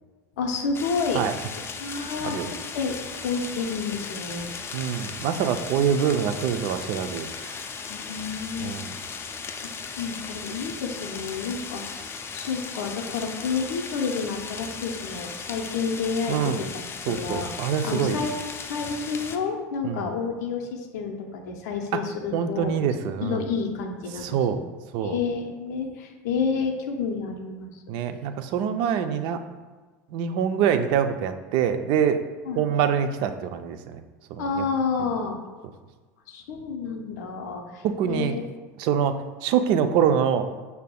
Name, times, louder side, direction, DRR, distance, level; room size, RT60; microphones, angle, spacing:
voice 1, 0.4-1.2 1.8-4.5 7.9-8.8 9.6-11.9 12.3-17.5 17.8-18.3 18.6-22.7 23.2-24.6 25.0-27.8 32.5-32.6 34.4-35.4 36.3-38.4, left 5 dB, 75° left, 3 dB, 0.6 m, -30 dB
sound 1, 0.7-19.4, left 5 dB, 25° left, 0.4 m, -37 dB
voice 2, 4.7-7.6 8.6-9.0 16.3-16.6 17.1-18.3 19.8-20.0 22.3-23.4 24.2-24.6 24.9-25.2 27.9-29.4 30.1-32.2 32.6-34.0 34.3-34.6 37.8-38.4 38.8-40.4, right 8 dB, 60° right, 9 dB, 0.4 m, -25 dB
5.6 x 3.4 x 2.2 m, 1.3 s
hypercardioid pair, 90°, 9 cm